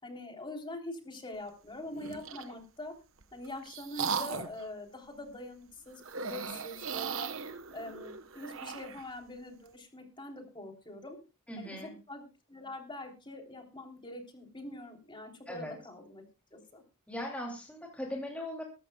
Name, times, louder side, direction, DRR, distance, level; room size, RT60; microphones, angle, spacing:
voice 1, 0.0-2.9 3.3-7.3 7.7-11.2 11.6-11.8 12.1-12.2 12.5-16.2 16.5-16.8, left 1 dB, 25° left, 2 dB, 3.3 m, -44 dB
sound 1, 1.9-2.5 3.2-4.6 6.0-9.1, right 6 dB, 65° right, 1.1 m, -38 dB
voice 2, 11.5-11.9 15.5-15.7 17.1-18.6, left 1 dB, 5° left, -1 dB, 2.8 m, -39 dB
22.5 x 12.5 x 2.3 m, 0.30 s
head